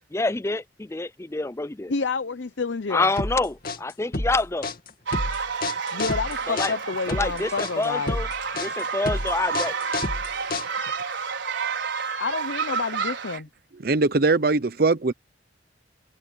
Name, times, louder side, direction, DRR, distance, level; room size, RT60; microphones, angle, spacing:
voice 1, 0.1-1.9 2.9-4.7 6.5-6.7 7.1-8.3 8.6-9.8, left 2 dB, 15° left, 0.4 m, -27 dB
voice 2, 1.9-3.1 5.9-8.2 12.2-13.5, left 4 dB, 70° left, 0.7 m, -29 dB
sound 1, 3.2-11.0, left 2 dB, 50° left, 2.5 m, -30 dB
sound 2, 5.1-13.4, right 5 dB, 75° right, 5.2 m, -30 dB
voice 3, 13.8-15.1, right 3 dB, 50° right, 0.7 m, -21 dB
head